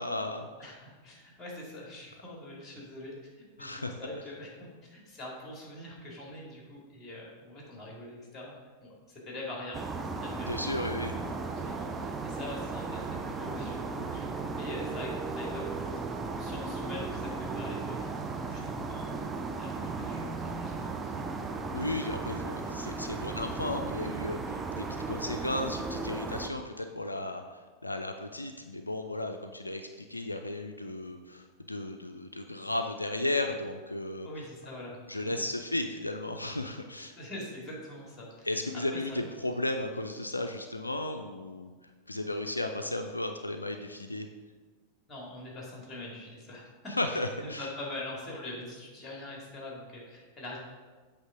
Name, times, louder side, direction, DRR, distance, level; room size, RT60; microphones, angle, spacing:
voice 1, 0.0-0.5 3.6-4.0 10.5-11.2 21.7-34.3 35.1-37.1 38.4-41.7 42.1-44.3 47.0-47.7, left 1 dB, 85° left, 6 dB, 0.3 m, -34 dB
voice 2, 0.6-8.5 8.8-13.0 13.4-21.4 34.2-35.3 37.2-38.5 38.7-39.5 45.1-50.6, left 1 dB, 15° left, -3 dB, 2.2 m, -44 dB
sound 1, 9.7-26.5, right 4 dB, 15° right, 0.5 m, -36 dB
7.9 x 3.4 x 5.0 m, 1.4 s
figure-of-eight pair, 90°, 0 cm